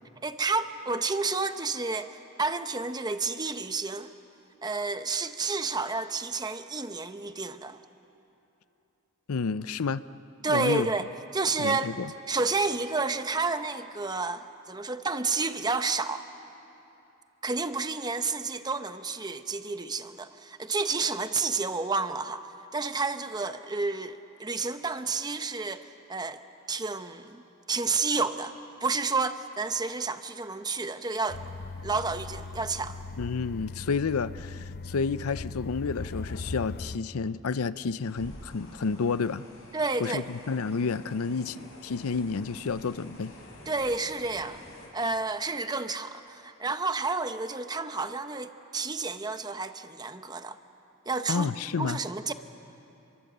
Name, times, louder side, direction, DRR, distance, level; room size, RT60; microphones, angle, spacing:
voice 1, 0.2-4.1 4.6-7.8 10.4-11.0 11.3-11.9 12.3-16.2 17.4-22.5 22.7-26.4 26.7-27.4 27.7-28.5 28.8-31.4 31.8-33.0 39.7-40.2 43.7-44.6 44.9-50.6 51.1-51.5 51.8-52.3, right 3 dB, 20° right, 9 dB, 0.8 m, -30 dB
voice 2, 9.3-10.0 10.5-10.9 11.6-12.1 33.2-39.5 40.0-43.3 51.3-52.0, left 5 dB, 90° left, 16 dB, 0.6 m, -30 dB
sound 1, 31.3-37.0, left 3 dB, 45° left, 0.6 m, -39 dB
sound 2, 38.0-44.9, left 1 dB, 70° left, 5.6 m, -49 dB
30.0 x 23.0 x 7.9 m, 2.9 s
head